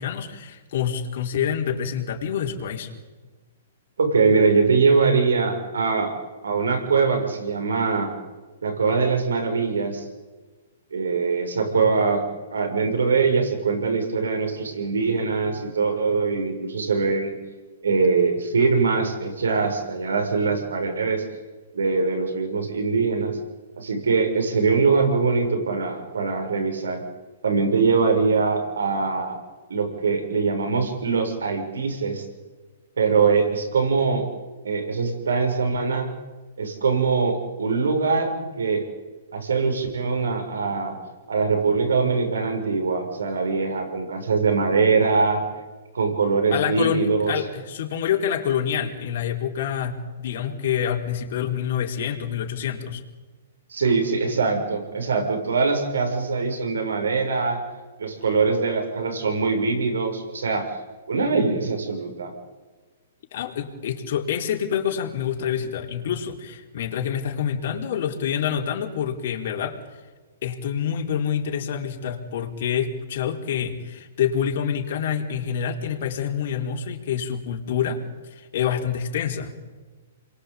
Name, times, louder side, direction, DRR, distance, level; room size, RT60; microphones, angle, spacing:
voice 1, 0.0-2.9 46.5-53.0 63.3-69.8 70.4-78.0 78.4-79.5, left 8 dB, 60° left, 2 dB, 4.5 m, -27 dB
voice 2, 4.0-6.1 6.4-8.1 8.6-10.1 10.9-17.3 17.8-21.2 21.7-23.4 23.8-27.0 27.4-29.4 29.7-32.3 33.0-34.3 34.6-36.1 36.6-38.8 39.3-41.0 41.3-45.4 45.9-47.3 53.7-57.6 58.0-60.7 61.1-62.3, right 4 dB, 85° right, 4 dB, 6.8 m, -22 dB
28.5 x 23.0 x 8.8 m, 1.3 s
hypercardioid pair, 135°, 0 cm